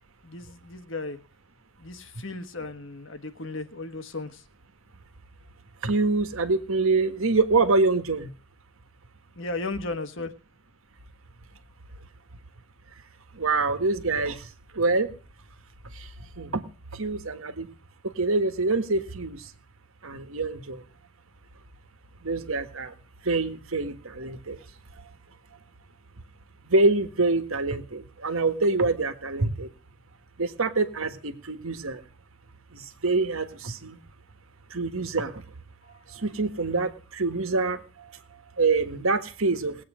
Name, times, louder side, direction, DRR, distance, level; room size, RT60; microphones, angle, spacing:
voice 1, 0.2-1.2 1.8-4.4 9.4-10.3, left 2 dB, 65° left, 10 dB, 1.3 m, -35 dB
voice 2, 5.8-8.3 13.3-14.4 14.7-15.1 16.4-16.6 17.0-17.7 18.2-19.4 20.0-20.8 22.2-22.9 23.2-24.6 26.7-29.7 30.4-32.0 32.7-34.0 34.7-35.3 36.1-37.8 38.6-39.8, right 3 dB, 80° right, 9 dB, 1.6 m, -25 dB
20.0 x 8.7 x 5.0 m, 0.38 s
head